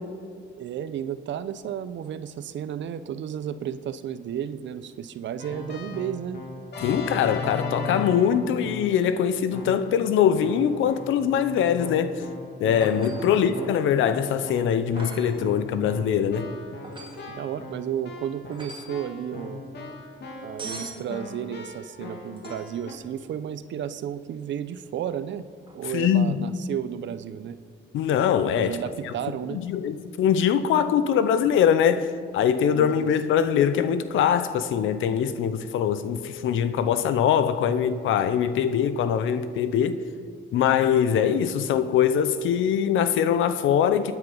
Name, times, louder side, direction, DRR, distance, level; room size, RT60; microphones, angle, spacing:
voice 1, 0.6-6.4 13.2-13.7 17.3-19.6 20.4-25.5 25.7-27.6 28.5-29.6 32.7-33.1, right 9 dB, 65° right, 0.8 m, -33 dB
Keyboard (musical), 5.4-9.0 9.5-10.0 10.4-22.9, left 3 dB, 60° left, 2.8 m, -38 dB
voice 2, 6.8-12.2 12.6-16.5 25.9-26.4 27.9-28.8 29.5-40.0 40.5-44.1, left 8 dB, 85° left, 0.8 m, -22 dB
sound 1, 12.8-13.5 15.0-15.4 16.8-17.3 18.5-19.0 20.6-21.1 22.4-22.9 25.6-25.8, right 3 dB, 25° right, 2.5 m, -41 dB
21.0 x 9.5 x 5.5 m
cardioid pair, 90°, 20 cm